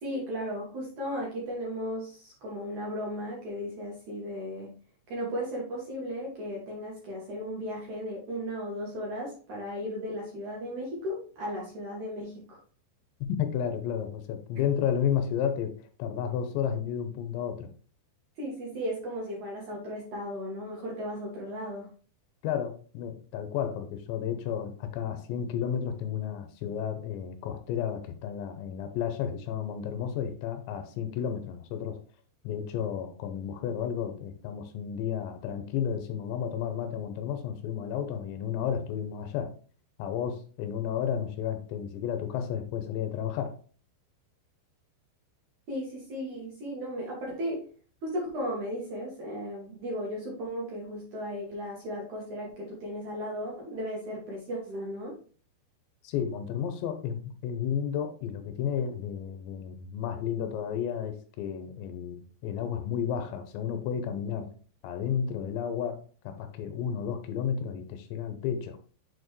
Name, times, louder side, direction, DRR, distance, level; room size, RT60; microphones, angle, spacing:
voice 1, 0.0-4.7 5.1-12.6 18.4-21.9 45.7-47.7 48.0-55.2, equal, 55° right, 2.3 m, -35 dB
voice 2, 13.2-17.7 22.4-32.0 32.4-39.5 40.0-43.6 56.0-64.5 64.8-68.8, left 8 dB, 85° left, 2.9 m, -32 dB
7.0 x 4.4 x 3.1 m
omnidirectional pair, 5.2 m